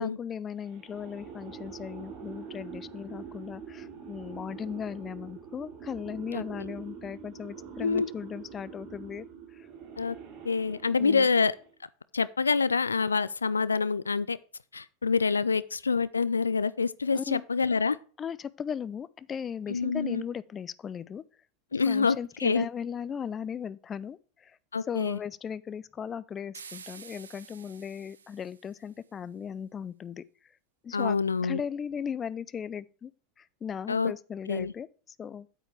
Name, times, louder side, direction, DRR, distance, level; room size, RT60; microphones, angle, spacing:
voice 1, 0.0-9.3 9.5-9.7 11.0-11.3 17.1-17.4 18.2-21.2 21.8-24.6 24.9-30.2 30.8-31.2 31.4-33.1 33.4-35.5, left 7 dB, 25° left, 0.5 m, -37 dB
sound 1, 0.6-11.8, right 6 dB, 45° right, 2.8 m, -45 dB
voice 2, 10.4-11.5 12.1-14.4 14.7-18.0 19.7-20.2 21.7-22.7 24.7-25.2 30.9-31.6 33.9-34.1 34.5-34.7, left 5 dB, 85° left, 0.3 m, -26 dB
sound 2, 26.5-28.9, right 6 dB, 80° right, 0.8 m, -49 dB
9.1 x 8.7 x 3.3 m
figure-of-eight pair, 85°, 0 cm